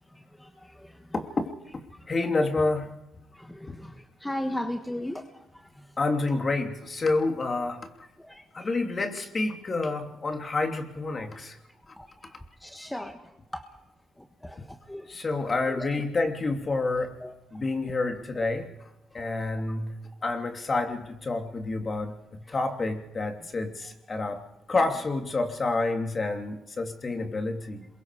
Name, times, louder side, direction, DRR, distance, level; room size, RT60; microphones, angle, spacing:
voice 1, 0.1-1.1 3.3-5.9 8.2-8.7 12.0-13.6 14.2-15.2 15.7-16.1 17.2-17.3 22.5-22.6, left 1 dB, 5° left, 6 dB, 1.4 m, -38 dB
voice 2, 2.1-3.0 3.7-3.8 6.0-8.0 8.5-11.6 15.1-17.2 17.5-18.7 19.1-20.0 20.2-24.4 24.7-27.9, left 3 dB, 35° left, 5 dB, 2.9 m, -28 dB
27.0 x 22.5 x 4.9 m, 0.92 s
cardioid pair, 90°, 0 cm